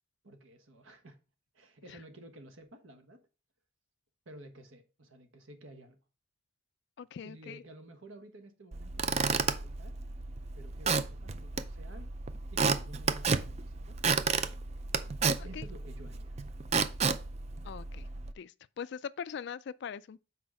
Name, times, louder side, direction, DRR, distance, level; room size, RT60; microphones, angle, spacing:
voice 1, 0.2-1.2 1.5-3.2 4.2-6.0 7.2-10.0 10.5-12.1 12.5-14.0 15.4-16.4, right 1 dB, 75° right, 1.2 m, -52 dB
voice 2, 7.0-7.6 15.4-15.7 17.6-18.1 18.4-20.2, left 7 dB, 55° left, 0.3 m, -42 dB
Squeak / Wood, 8.7-18.3, right 5 dB, 30° right, 0.4 m, -32 dB
6.1 x 4.7 x 4.8 m
head